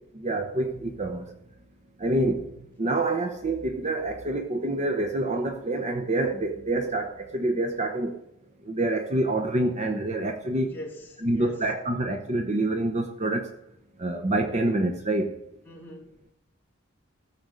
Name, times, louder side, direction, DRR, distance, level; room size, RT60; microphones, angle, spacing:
voice 1, 0.2-1.4 2.0-8.2 8.6-10.7 11.2-13.5 14.0-15.3, right 2 dB, 35° right, 5 dB, 0.9 m, -27 dB
voice 2, 10.6-11.7 15.6-16.2, equal, 10° left, -4 dB, 3.1 m, -42 dB
14.5 x 6.9 x 6.5 m, 0.82 s
head